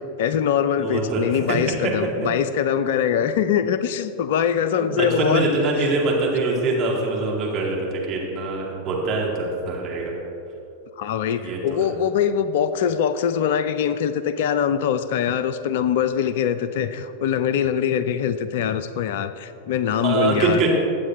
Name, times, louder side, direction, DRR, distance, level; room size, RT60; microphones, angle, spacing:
voice 1, 0.2-5.5 11.0-20.7, left 8 dB, 55° left, 12 dB, 0.4 m, -23 dB
voice 2, 0.8-1.9 4.8-10.1 11.4-11.9 20.0-20.7, right 3 dB, 35° right, -2 dB, 2.4 m, -24 dB
21.0 x 8.1 x 2.7 m, 2.7 s
figure-of-eight pair, 90°, 0 cm